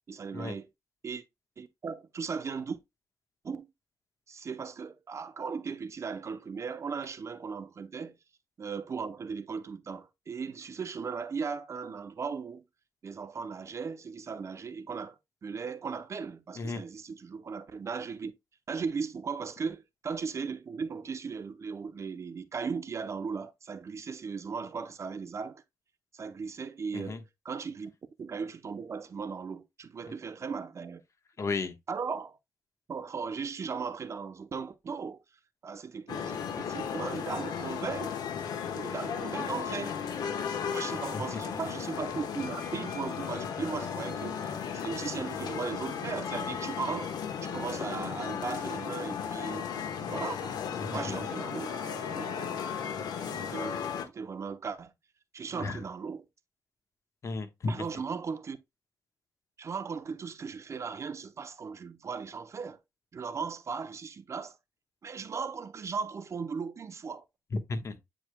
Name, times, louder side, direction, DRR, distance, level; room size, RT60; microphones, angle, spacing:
voice 1, 0.1-0.7 1.0-1.2 1.6-2.8 3.4-3.7 4.3-8.2 8.6-12.7 13.0-18.3 18.7-25.6 26.1-27.9 28.2-31.0 31.9-32.4 32.9-35.2 35.6-38.1 38.7-40.0 40.7-47.1 47.4-49.7 50.1-50.6 50.9-51.7 52.2-52.4 53.3-53.8 54.1-54.9 55.3-56.3 57.7-58.6 59.6-62.8 63.1-64.6 65.0-67.2, right 5 dB, 45° right, 0.7 m, -37 dB
voice 2, 31.4-31.7 40.9-41.2 50.7-51.2 55.5-55.8 57.2-57.9 67.7-68.0, left 3 dB, 50° left, 1.2 m, -34 dB
sound 1, 36.1-54.1, left 7 dB, 85° left, 1.1 m, -35 dB
8.8 x 4.8 x 2.2 m
cardioid pair, 95°, 7 cm